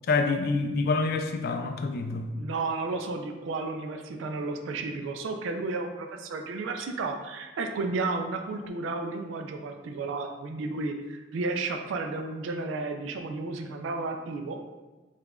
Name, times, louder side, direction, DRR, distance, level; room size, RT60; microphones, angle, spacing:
voice 1, 0.1-2.3, left 3 dB, 55° left, 6 dB, 0.3 m, -27 dB
voice 2, 2.4-14.6, right 3 dB, 85° right, 5 dB, 0.3 m, -32 dB
4.7 x 2.4 x 2.3 m, 1.2 s
head